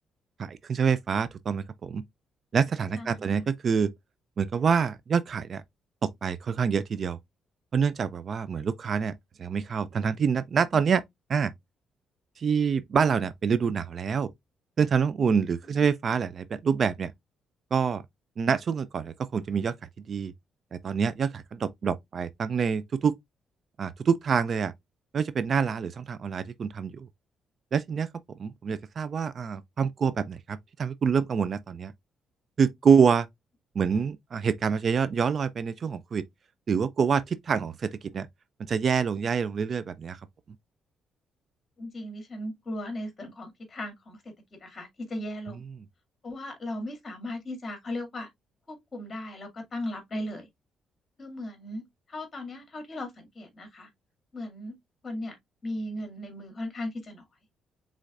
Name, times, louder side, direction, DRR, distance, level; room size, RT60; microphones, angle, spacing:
voice 1, 0.4-2.0 2.5-3.9 4.4-5.6 6.0-7.2 7.7-11.0 11.3-11.5 12.4-14.3 14.8-17.1 17.7-18.0 18.4-20.3 20.7-23.1 23.8-24.7 25.1-27.1 27.7-31.9 32.6-33.3 33.8-36.2 36.7-38.3 38.7-40.2, right 6 dB, 50° right, 0.4 m, -26 dB
voice 2, 3.0-3.3 41.8-44.3 44.6-45.6 46.2-48.3 48.7-50.5 51.2-53.9 54.3-54.8 55.0-55.4 55.6-57.2, left 1 dB, 35° left, 2.2 m, -37 dB
5.1 x 3.7 x 2.4 m
cardioid pair, 90°, 0 cm